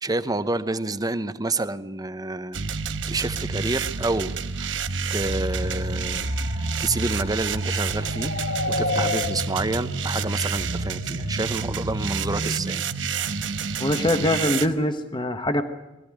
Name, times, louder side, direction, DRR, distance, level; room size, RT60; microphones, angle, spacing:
voice 1, 0.0-2.7 3.1-12.8, right 2 dB, 20° right, 12 dB, 0.9 m, -29 dB
sound 1, 2.5-14.7, right 4 dB, 75° right, 1.1 m, -28 dB
sound 2, 5.6-11.4, left 3 dB, 70° left, 1.2 m, -33 dB
voice 2, 13.8-15.6, left 1 dB, 25° left, 8 dB, 1.2 m, -23 dB
21.5 x 15.5 x 10.0 m, 1.0 s
head